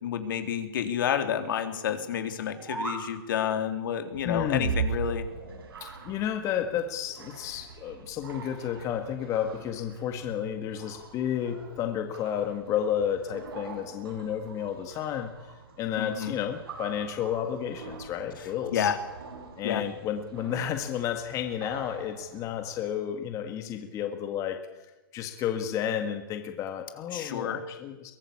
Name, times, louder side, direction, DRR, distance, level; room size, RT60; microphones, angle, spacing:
voice 1, 0.0-5.3 16.0-16.4 18.4-19.0 19.6-19.8 27.1-27.6, left 9 dB, 65° left, 7 dB, 3.6 m, -30 dB
sound 1, 2.4-3.1, right 2 dB, 5° right, 3.8 m, -35 dB
sound 2, 4.1-22.8, right 5 dB, 85° right, 7.1 m, -41 dB
voice 2, 4.2-4.7 5.8-15.3 15.8-18.9 19.6-24.6 25.1-28.1, left 9 dB, 25° left, 6 dB, 1.9 m, -31 dB
23.0 x 18.5 x 8.7 m, 1.1 s
hypercardioid pair, 150°, 12 cm